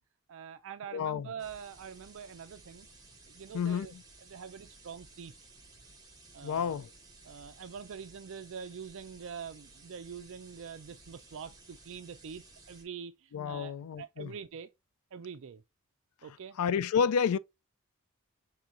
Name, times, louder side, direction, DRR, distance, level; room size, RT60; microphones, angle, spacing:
voice 1, 0.3-2.9 3.3-3.9 4.3-5.3 6.3-6.8 7.2-14.7 15.1-15.6 16.2-16.6, right 7 dB, 60° right, 0.4 m, -45 dB
voice 2, 0.9-1.3 3.5-4.0 6.4-6.9 13.3-14.3 16.6-17.4, left 7 dB, 90° left, 0.4 m, -30 dB
sound 1, 1.4-12.8, right 3 dB, 20° right, 1.7 m, -56 dB
6.0 x 3.6 x 2.5 m
head